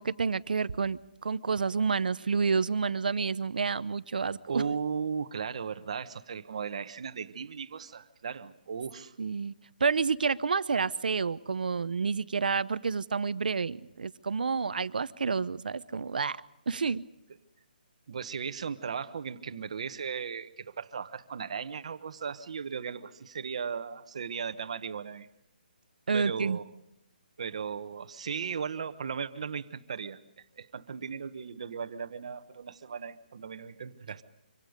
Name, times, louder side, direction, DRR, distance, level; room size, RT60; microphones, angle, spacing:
voice 1, 0.0-4.6 9.2-9.5 9.8-16.4 16.7-17.0 26.1-26.6, right 5 dB, 65° right, 16 dB, 0.8 m, -29 dB
voice 2, 4.5-9.1 18.1-25.3 26.1-26.6 27.4-30.2 30.6-34.2, right 6 dB, 40° right, 10 dB, 1.1 m, -36 dB
25.5 x 25.5 x 5.2 m, 0.84 s
hypercardioid pair, 175°, 5 cm